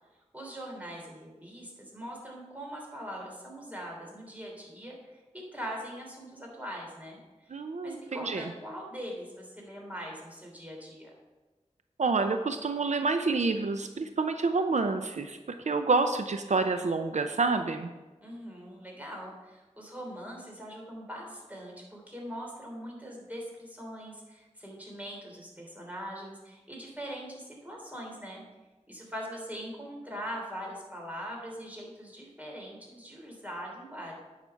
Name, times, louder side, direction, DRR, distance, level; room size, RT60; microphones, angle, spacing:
voice 1, 0.3-7.5 7.8-11.1 18.2-28.4 28.9-34.1, equal, 15° right, -1 dB, 3.1 m, -42 dB
voice 2, 7.5-8.5 12.0-17.9, right 3 dB, 80° right, 7 dB, 0.5 m, -28 dB
9.6 x 5.9 x 5.7 m, 1.2 s
wide cardioid pair, 55°, 12 cm